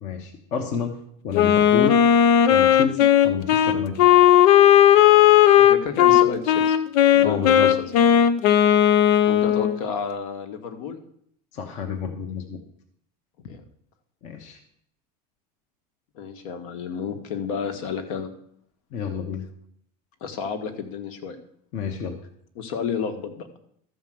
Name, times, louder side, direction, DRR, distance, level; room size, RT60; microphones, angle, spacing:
voice 1, 0.0-0.9 1.2-2.0 2.5-3.9 7.2-7.7 11.5-12.6 14.2-14.6 18.9-19.5 21.7-22.2, left 6 dB, 35° left, 4 dB, 1.1 m, -29 dB
Wind instrument woodwind instrument, 1.3-9.8, left 10 dB, 75° left, 0.9 m, -16 dB
voice 2, 5.6-6.8 7.1-7.9 9.3-11.0 13.5-13.6 16.1-18.3 20.2-21.4 22.5-23.5, left 6 dB, 60° left, 7 dB, 1.6 m, -31 dB
13.0 x 5.2 x 7.7 m, 0.67 s
cardioid pair, 175°, 20 cm